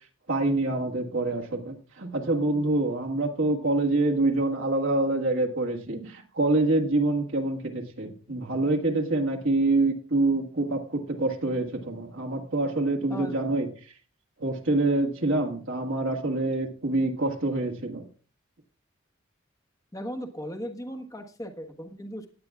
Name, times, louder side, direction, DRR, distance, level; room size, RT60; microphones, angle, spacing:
voice 1, 0.3-13.7 14.4-18.1, right 2 dB, 70° right, 0 dB, 1.6 m, -26 dB
voice 2, 19.9-22.3, equal, 15° left, 4 dB, 1.3 m, -37 dB
17.5 x 9.6 x 2.4 m, 0.39 s
head